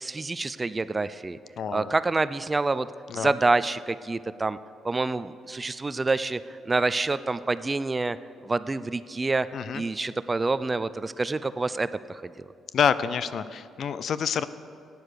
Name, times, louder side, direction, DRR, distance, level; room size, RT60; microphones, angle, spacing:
voice 1, 0.0-1.4 1.7-2.9 3.1-4.6 4.8-8.2 8.4-9.5 9.7-12.5, right 3 dB, 25° right, 15 dB, 0.4 m, -27 dB
voice 2, 1.6-1.9 3.1-3.3 9.5-9.8 12.7-14.5, left 7 dB, 60° left, 15 dB, 0.5 m, -27 dB
14.0 x 9.4 x 6.6 m, 2.4 s
cardioid pair, 90°, 0 cm